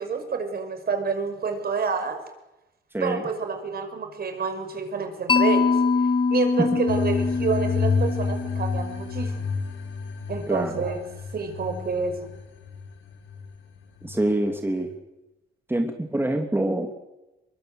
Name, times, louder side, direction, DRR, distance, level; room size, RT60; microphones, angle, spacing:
voice 1, 0.0-2.2 3.0-5.8 6.3-9.5 10.3-11.0 11.3-12.3, right 5 dB, 50° right, 7 dB, 5.6 m, -28 dB
Mallet percussion, 5.3-9.3, left 4 dB, 25° left, 1.7 m, -24 dB
sound 1, 6.9-14.9, left 5 dB, 75° left, 6.4 m, -30 dB
voice 2, 10.5-10.8 14.0-14.9 15.7-17.0, right 1 dB, 10° right, 4 dB, 2.9 m, -25 dB
23.5 x 23.0 x 8.0 m, 0.96 s
cardioid pair, 90°, 20 cm